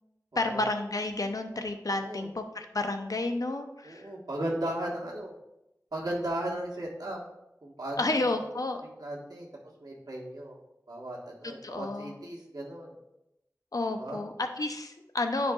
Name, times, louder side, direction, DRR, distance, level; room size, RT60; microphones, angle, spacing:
voice 1, 0.4-4.1 8.0-8.8 11.6-12.1 13.7-15.5, left 2 dB, 65° left, 6 dB, 0.7 m, -31 dB
voice 2, 1.9-2.3 3.8-5.3 5.9-7.2 7.6-8.5 9.0-9.5 9.8-10.6 10.9-12.9 14.0-14.2, right 1 dB, 85° right, -3 dB, 1.6 m, -36 dB
10.0 x 5.0 x 2.4 m, 0.89 s
wide cardioid pair, 40°, 7 cm